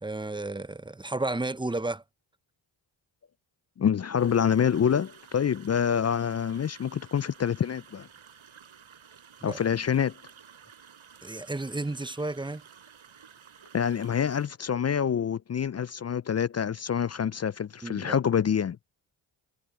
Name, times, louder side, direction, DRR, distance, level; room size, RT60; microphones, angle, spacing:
voice 1, 0.0-2.0 9.4-9.6 11.2-12.6 17.8-18.2, right 2 dB, 10° right, 0.8 m, -32 dB
voice 2, 3.8-8.1 9.4-10.1 13.7-18.8, left 8 dB, 35° left, 0.4 m, -26 dB
sound 1, 4.2-14.5, right 7 dB, 80° right, 7.0 m, -53 dB
cardioid pair, 45°, 48 cm